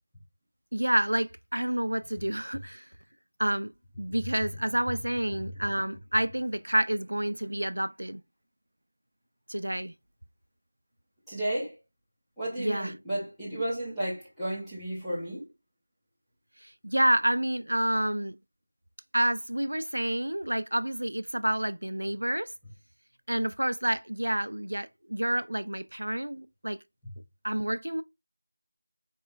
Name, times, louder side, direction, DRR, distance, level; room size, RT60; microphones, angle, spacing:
voice 1, 0.7-2.9 3.4-3.7 4.0-8.2 9.5-9.9 12.6-12.9 16.6-18.4 19.1-22.5 23.3-26.8 27.4-28.0, right 1 dB, 85° right, 0.3 m, -29 dB
voice 2, 11.3-11.8 12.4-15.5, right 1 dB, ahead, 0.6 m, -33 dB
4.3 x 3.2 x 2.3 m
figure-of-eight pair, 180°, 0 cm